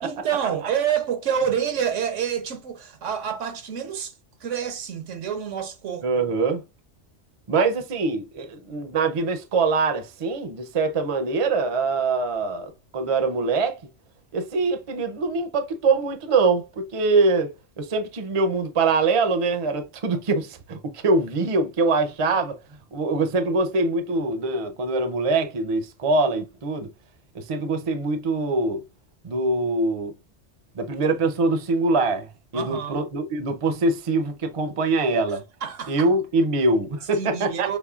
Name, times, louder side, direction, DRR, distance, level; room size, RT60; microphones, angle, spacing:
voice 1, 0.0-4.1 4.4-6.1 32.5-33.0 35.6-36.1 37.1-37.8, right 8 dB, 80° right, 1.2 m, -27 dB
voice 2, 6.0-6.6 7.5-13.8 14.3-17.5 17.8-22.6 22.9-26.9 27.3-28.8 29.2-30.1 30.7-35.4 35.9-37.8, right 3 dB, 40° right, 0.5 m, -23 dB
6.3 x 3.0 x 2.4 m
omnidirectional pair, 1.2 m